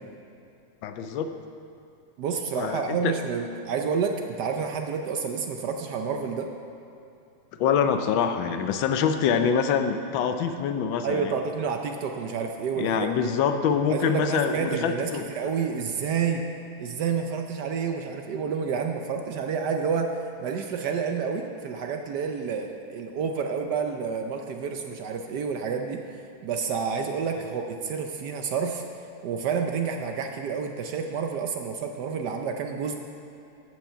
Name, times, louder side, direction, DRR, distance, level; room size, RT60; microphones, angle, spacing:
voice 1, 0.8-1.3 2.6-3.2 7.6-11.3 12.8-15.3, left 7 dB, 75° left, 8 dB, 1.3 m, -25 dB
voice 2, 2.2-6.5 11.0-13.3 13.9-16.4 16.8-26.0 26.4-28.8 29.2-33.0, right 6 dB, 70° right, 4 dB, 1.1 m, -29 dB
14.5 x 6.2 x 5.7 m, 2.7 s
omnidirectional pair, 2.2 m